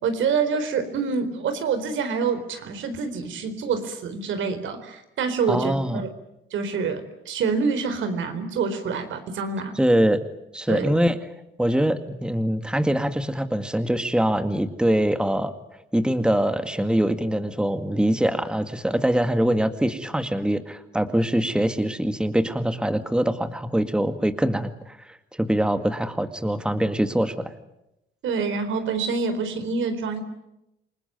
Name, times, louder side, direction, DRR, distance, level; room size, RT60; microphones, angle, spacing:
voice 1, 0.0-6.1 6.5-9.7 10.7-11.0 28.2-30.2, right 5 dB, 75° right, 9 dB, 4.3 m, -26 dB
voice 2, 5.5-6.0 9.8-10.2 10.5-11.2 11.6-15.5 15.9-27.5, right 1 dB, 5° right, 8 dB, 2.0 m, -23 dB
28.0 x 20.0 x 9.4 m, 0.87 s
cardioid pair, 90°, 20 cm